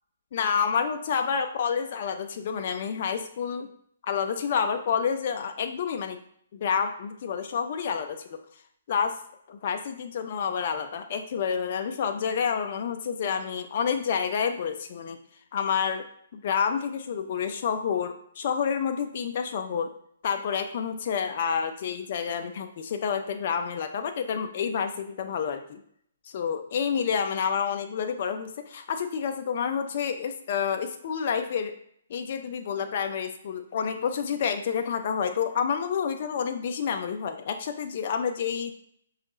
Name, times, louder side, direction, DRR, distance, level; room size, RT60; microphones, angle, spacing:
voice 1, 0.3-3.7 4.1-6.2 6.5-8.4 8.9-9.2 9.5-15.2 15.5-16.1 16.3-19.9 20.2-25.8 26.3-31.7 32.1-38.7, left 7 dB, 45° left, 6 dB, 0.4 m, -29 dB
5.2 x 2.4 x 3.9 m, 0.67 s
figure-of-eight pair, 130°, 0 cm